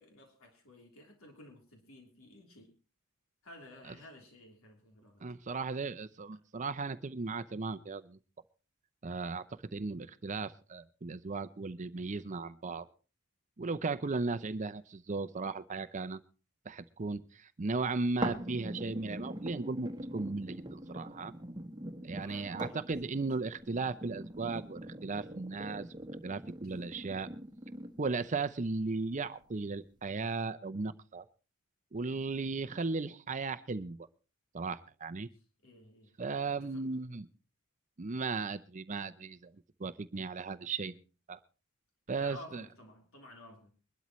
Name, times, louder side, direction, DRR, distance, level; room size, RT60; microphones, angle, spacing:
voice 1, 0.0-2.7 3.4-5.2 14.2-14.4 22.2-22.8 23.0-23.2 26.6-26.8 32.8-33.1 35.3-36.1 36.6-36.9 42.1-43.7, left 1 dB, 75° left, 2 dB, 3.4 m, -54 dB
voice 2, 5.2-8.2 9.0-9.4 9.7-12.9 13.6-16.2 16.7-21.3 22.0-25.8 26.2-27.3 28.0-31.2 31.9-34.0 34.5-35.3 36.2-37.3 38.0-39.5 39.8-40.9 41.3-41.4 42.1-42.6, right 3 dB, 35° right, 13 dB, 0.6 m, -36 dB
sound 1, 18.2-28.2 28.8-28.9, right 1 dB, 20° right, 1.2 m, -42 dB
22.0 x 12.5 x 3.1 m, 0.34 s
head